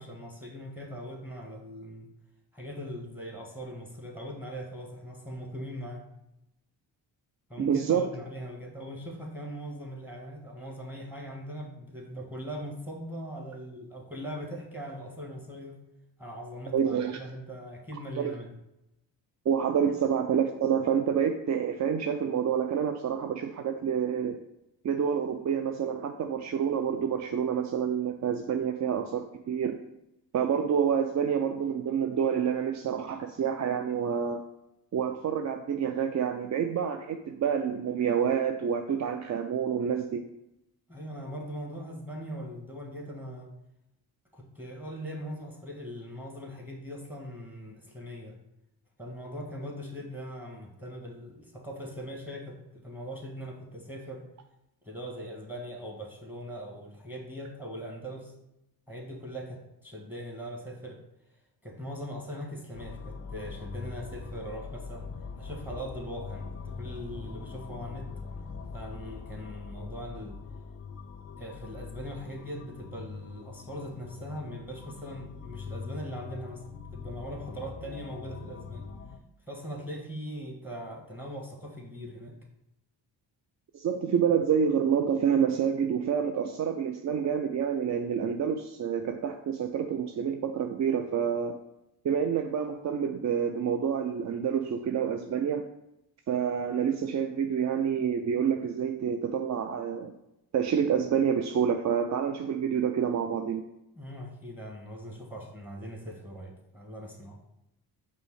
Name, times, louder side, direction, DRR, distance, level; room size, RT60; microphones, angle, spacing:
voice 1, 0.0-2.1 2.5-6.1 7.5-15.8 16.2-18.5 40.9-43.5 44.3-48.4 49.0-54.2 54.8-58.3 58.9-61.0 61.6-68.1 68.7-70.4 71.4-76.6 76.9-78.9 79.5-82.4 103.9-107.4, equal, 5° right, 1 dB, 1.3 m, -40 dB
voice 2, 7.6-8.1 16.7-17.2 18.2-18.3 19.5-24.4 24.8-29.8 30.3-34.4 34.9-40.3 83.7-91.6 92.0-95.7 96.3-100.1 100.5-103.6, right 7 dB, 40° right, 5 dB, 0.4 m, -28 dB
sound 1, 62.7-79.2, left 5 dB, 30° left, 0.5 m, -42 dB
5.2 x 2.2 x 4.7 m, 0.86 s
supercardioid pair, 40°, 48 cm